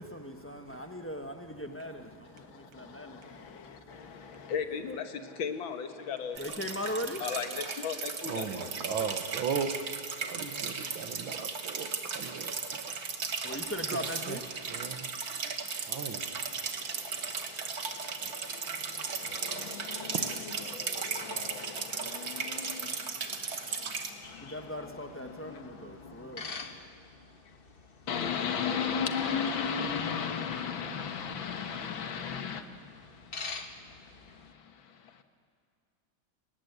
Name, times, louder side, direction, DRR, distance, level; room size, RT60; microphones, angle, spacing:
voice 1, 0.0-4.5 6.4-7.4 13.4-14.9 24.4-26.9, left 1 dB, 10° left, 0.8 m, -40 dB
voice 2, 2.3-9.2 9.5-9.7 10.1-14.3 15.3-26.9 28.1-35.2, left 6 dB, 75° left, 2.1 m, -39 dB
sound 1, 6.4-24.1, right 5 dB, 50° right, 1.9 m, -36 dB
voice 3, 8.3-13.4 13.9-16.9 18.9-19.0 20.1-20.3 23.9-24.1, right 6 dB, 75° right, 2.1 m, -38 dB
sound 2, 24.2-34.5, left 4 dB, 35° left, 1.1 m, -48 dB
28.0 x 19.0 x 8.2 m
omnidirectional pair, 2.2 m